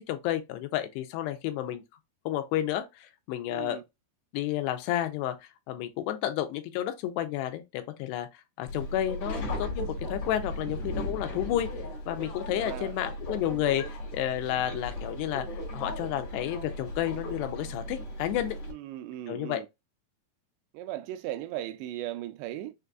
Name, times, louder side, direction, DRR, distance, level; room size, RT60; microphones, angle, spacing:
voice 1, 0.0-1.8 2.3-3.8 4.3-5.4 5.7-8.3 8.6-11.7 12.1-15.5 15.7-18.6 19.3-19.6, left 12 dB, 85° left, 2.6 m, -31 dB
voice 2, 3.5-3.8 12.5-13.0 18.7-19.7 20.7-22.7, right 13 dB, 85° right, 2.7 m, -37 dB
Subway metro underground, 8.7-18.7, left 1 dB, 50° left, 1.9 m, -36 dB
6.5 x 2.5 x 2.3 m
omnidirectional pair, 4.9 m